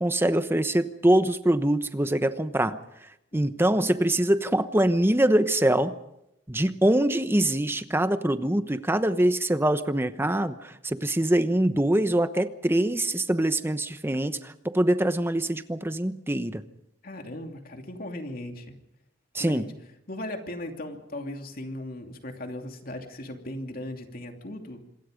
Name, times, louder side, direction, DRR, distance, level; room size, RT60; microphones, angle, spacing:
voice 1, 0.0-2.8 3.3-5.9 6.5-16.6 19.3-19.7, right 1 dB, 15° right, 10 dB, 1.0 m, -24 dB
voice 2, 17.0-18.7 19.4-19.7 20.1-24.8, left 1 dB, 50° left, 4 dB, 2.8 m, -37 dB
26.5 x 22.0 x 5.2 m, 0.84 s
head